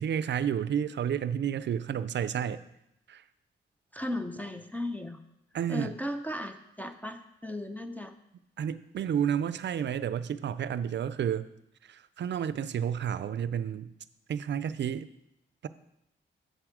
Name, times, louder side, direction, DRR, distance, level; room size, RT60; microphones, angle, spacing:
voice 1, 0.0-2.6 3.1-3.2 5.5-6.0 8.6-11.5 11.8-13.9 14.3-15.1 15.6-15.7, right 8 dB, 65° right, 15 dB, 0.5 m, -31 dB
voice 2, 3.9-5.2 5.7-8.1, left 1 dB, 10° left, 4 dB, 0.5 m, -36 dB
7.7 x 6.7 x 4.8 m, 0.82 s
cardioid pair, 95°, 20 cm